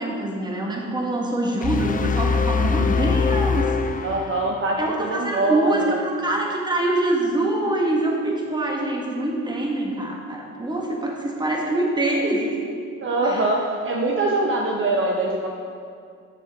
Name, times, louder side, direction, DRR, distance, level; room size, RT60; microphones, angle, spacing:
voice 1, 0.0-4.1 4.8-12.6 13.2-13.5, right 1 dB, 15° right, -1 dB, 1.6 m, -24 dB
sound 1, 1.6-4.8, left 5 dB, 30° left, 0.4 m, -23 dB
voice 2, 4.0-6.0 13.0-15.5, right 2 dB, 45° right, 0 dB, 0.9 m, -23 dB
7.6 x 6.6 x 5.1 m, 2.3 s
cardioid pair, 90°, 30 cm